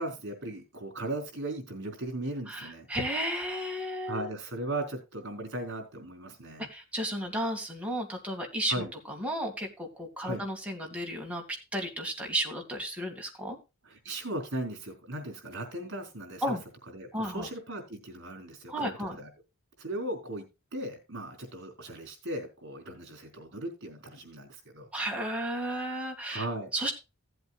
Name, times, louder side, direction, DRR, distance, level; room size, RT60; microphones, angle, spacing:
voice 1, 0.0-2.9 4.1-6.7 8.7-8.9 10.2-10.4 13.8-16.6 16.9-19.3 19.8-20.4 20.7-24.9 26.3-26.7, right 1 dB, 55° right, 3.9 m, -37 dB
voice 2, 2.5-4.3 6.7-11.4 11.7-13.6 16.4-16.6 17.1-17.5 18.7-19.2 24.9-26.5 26.7-26.9, right 1 dB, 5° right, 2.2 m, -33 dB
16.5 x 7.9 x 2.4 m
head